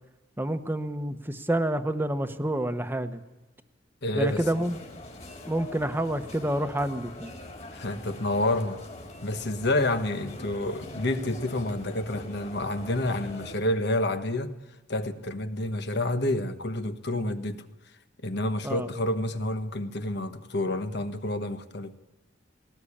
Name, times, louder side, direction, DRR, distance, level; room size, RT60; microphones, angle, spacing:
voice 1, 0.4-3.2 4.1-4.8 5.5-7.3 18.6-18.9, right 1 dB, 10° right, 1.0 m, -28 dB
voice 2, 4.0-4.5 7.7-8.8 9.2-14.6 14.9-17.6 18.2-22.0, left 1 dB, 60° left, 1.4 m, -29 dB
sound 1, 4.2-13.6, left 1 dB, 35° left, 3.9 m, -43 dB
19.5 x 18.5 x 8.6 m
head